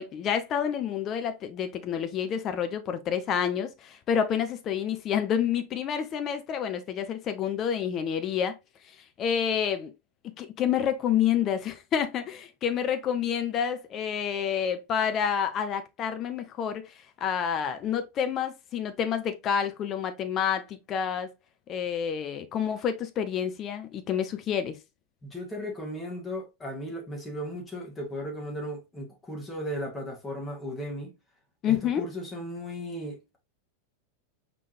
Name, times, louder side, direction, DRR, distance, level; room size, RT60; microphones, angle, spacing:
voice 1, 0.0-8.5 9.2-9.9 10.4-16.9 17.2-21.3 21.7-24.8 31.6-32.1, left 8 dB, 30° left, 0.7 m, -28 dB
voice 2, 25.2-31.1 31.6-33.4, equal, 15° left, 1.7 m, -36 dB
5.1 x 3.7 x 2.6 m
figure-of-eight pair, 90°, 0 cm